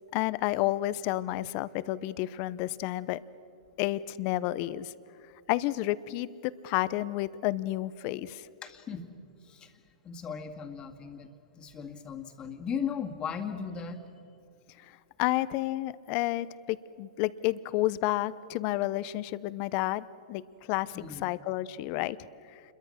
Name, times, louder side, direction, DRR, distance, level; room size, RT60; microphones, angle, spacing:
voice 1, 0.1-3.2 3.8-4.9 5.5-8.5 15.2-20.4 20.7-22.2, left 16 dB, 40° left, 17 dB, 0.7 m, -30 dB
voice 2, 8.6-9.1 9.4-9.7 10.0-14.0 20.9-21.3, left 7 dB, 25° left, 5 dB, 2.1 m, -37 dB
28.0 x 22.5 x 6.5 m, 2.7 s
hypercardioid pair, 125°, 4 cm